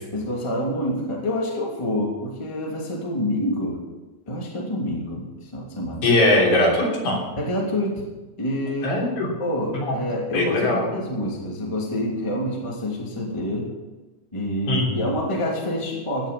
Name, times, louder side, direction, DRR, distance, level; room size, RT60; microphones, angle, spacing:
voice 1, 0.1-3.8 4.3-6.0 7.4-8.1 8.4-9.0 9.4-13.7 14.3-16.3, left 1 dB, 10° left, -3 dB, 2.4 m, -27 dB
voice 2, 6.0-7.2 8.8-9.3 9.7-9.9 10.3-10.8 14.7-14.9, left 2 dB, 60° left, -3 dB, 4.9 m, -20 dB
17.0 x 7.4 x 7.1 m, 1.2 s
omnidirectional pair, 3.8 m